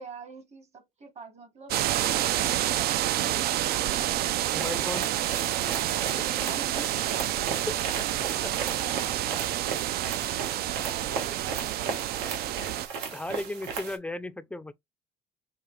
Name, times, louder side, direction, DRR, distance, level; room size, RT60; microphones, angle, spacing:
voice 1, 0.0-1.7 6.0-7.5 7.9-8.1 8.4-9.7 10.2-12.6, right 4 dB, 40° right, 1.3 m, -47 dB
sound 1, 1.7-12.9, right 13 dB, 65° right, 0.4 m, -28 dB
sound 2, 4.4-14.0, right 5 dB, 90° right, 1.2 m, -37 dB
voice 2, 4.5-5.1 6.2-6.3 7.5-7.8 8.4-8.5 10.5-10.6 13.1-14.7, left 2 dB, 5° left, 0.4 m, -35 dB
5.1 x 2.5 x 3.1 m
cardioid pair, 110°, 17 cm